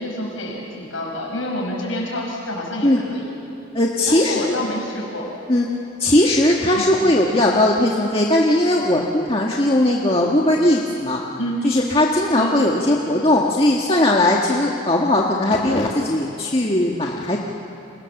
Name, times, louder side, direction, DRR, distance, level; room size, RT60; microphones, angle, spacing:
voice 1, 0.0-3.3 4.1-5.3 6.7-6.9 11.4-11.6 12.3-12.6, left 1 dB, 85° left, -1 dB, 5.7 m, -28 dB
voice 2, 3.7-4.5 5.5-5.7 6.0-11.2 11.6-17.4, left 1 dB, 30° left, -2 dB, 1.7 m, -18 dB
30.0 x 27.0 x 7.3 m, 2.6 s
head